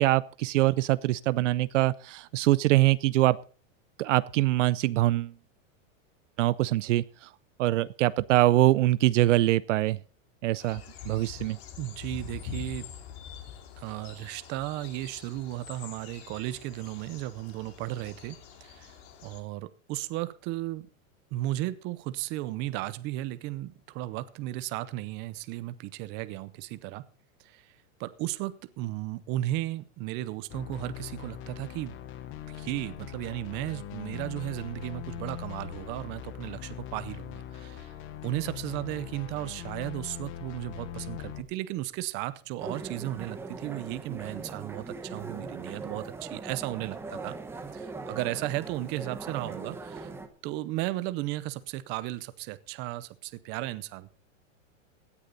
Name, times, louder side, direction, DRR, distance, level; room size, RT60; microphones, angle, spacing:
voice 1, 0.0-3.4 4.0-5.3 6.4-7.3 7.6-10.0 10.4-11.6, right 16 dB, 65° right, 0.6 m, -24 dB
sound 1, 10.6-19.4, left 8 dB, 50° left, 2.8 m, -45 dB
voice 2, 11.8-12.9 13.8-18.9 19.2-20.9 21.3-27.0 27.4-27.7 28.0-32.0 32.5-37.9 38.2-47.4 47.7-50.1 50.4-54.1, right 16 dB, 25° right, 0.7 m, -35 dB
sound 2, 30.5-41.4, left 10 dB, 30° left, 1.0 m, -41 dB
sound 3, 42.6-50.3, right 3 dB, 5° right, 0.9 m, -40 dB
17.0 x 9.9 x 4.0 m
supercardioid pair, 160°, 40 cm